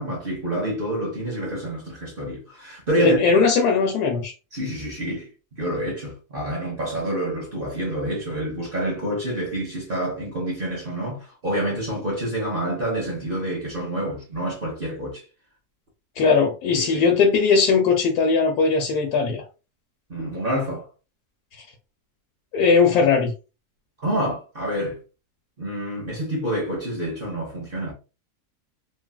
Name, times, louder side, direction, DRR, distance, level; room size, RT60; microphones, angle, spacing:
voice 1, 0.0-3.2 4.5-5.3 5.5-15.2 16.7-17.1 20.1-20.9 24.0-25.0 25.6-27.9, right 1 dB, 45° right, 0.9 m, -28 dB
voice 2, 3.0-4.3 16.2-19.5 21.6-21.7 22.5-23.3, left 5 dB, 80° left, 1.2 m, -19 dB
3.3 x 2.4 x 2.2 m
omnidirectional pair, 1.7 m